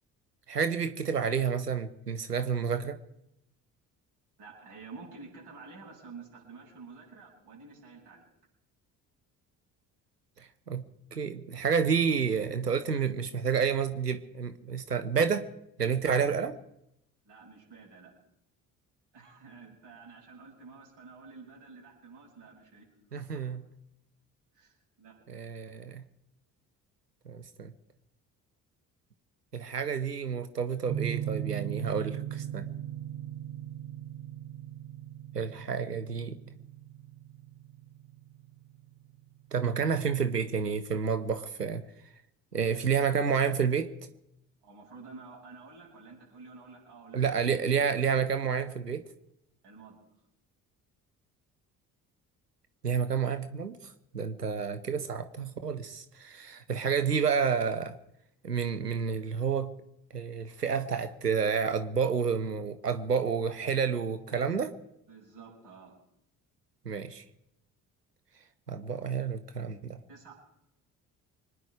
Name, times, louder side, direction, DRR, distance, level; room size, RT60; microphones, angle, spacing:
voice 1, 0.5-3.0 10.4-15.5 15.8-16.6 23.1-23.6 25.3-26.0 27.3-27.7 29.5-32.7 35.3-36.4 39.5-41.8 42.5-43.9 47.1-49.0 52.8-58.0 58.4-59.7 60.1-64.7 66.9-67.2 68.7-70.0, right 6 dB, 90° right, 10 dB, 0.7 m, -30 dB
voice 2, 4.4-8.3 17.2-18.1 19.1-22.9 23.2-23.4 24.5-25.2 44.6-47.4 49.6-50.0 65.1-66.0 70.1-70.3, right 4 dB, 60° right, -4 dB, 7.2 m, -50 dB
sound 1, 30.9-39.6, right 11 dB, 40° right, 0.8 m, -38 dB
25.0 x 10.0 x 4.8 m, 0.80 s
figure-of-eight pair, 50°, 47 cm